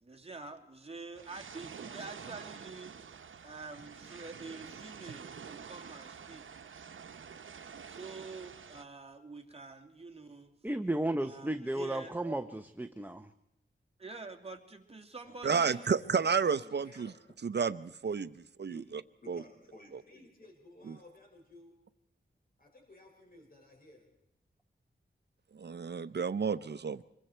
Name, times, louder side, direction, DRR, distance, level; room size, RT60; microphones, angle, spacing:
voice 1, 0.0-3.0 3.4-6.5 7.9-10.5 11.2-12.4 14.0-15.9, right 3 dB, 30° right, 3 dB, 2.6 m, -47 dB
sound 1, 1.2-8.8, right 6 dB, 85° right, 0.9 m, -48 dB
voice 2, 10.6-13.3, right 1 dB, 10° right, 9 dB, 0.8 m, -34 dB
voice 3, 15.4-17.1 17.4-18.3 18.6-19.0 19.3-19.4 25.5-27.0, right 6 dB, 60° right, 14 dB, 0.7 m, -31 dB
voice 4, 16.6-17.1 18.7-18.9 19.2-21.8 22.6-24.1, left 1 dB, 45° left, 1 dB, 5.6 m, -55 dB
26.5 x 22.5 x 4.5 m, 0.83 s
wide cardioid pair, 110°, 20 cm